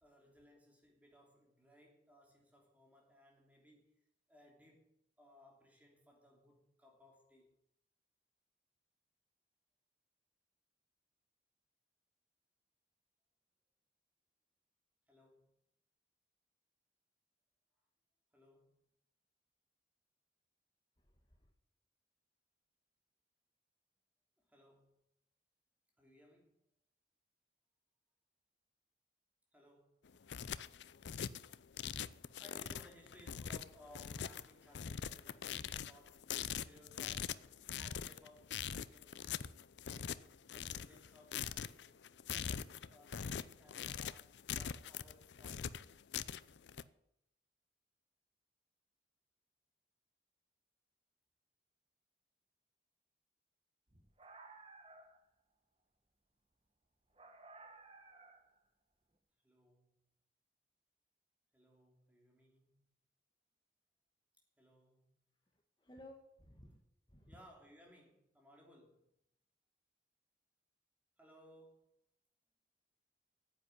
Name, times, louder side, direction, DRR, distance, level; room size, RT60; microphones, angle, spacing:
voice 1, 0.0-4.0 4.3-4.9 5.2-7.5 15.1-15.6 18.3-18.8 24.5-25.0 26.0-26.6 29.5-30.1 32.1-37.4 37.7-41.9 42.2-45.8 59.4-60.0 61.5-62.9 64.6-65.2 67.3-69.1 71.2-71.9, left 1 dB, 10° right, 3.1 m, -64 dB
voice 2, 21.0-21.5 65.5-66.8 67.1-67.4, left 1 dB, 25° left, 1.3 m, -58 dB
sound 1, 30.0-46.8, left 8 dB, 80° left, 0.5 m, -43 dB
sound 2, 53.9-55.3 57.1-58.6, right 3 dB, 30° right, 1.4 m, -57 dB
9.9 x 8.1 x 9.5 m
head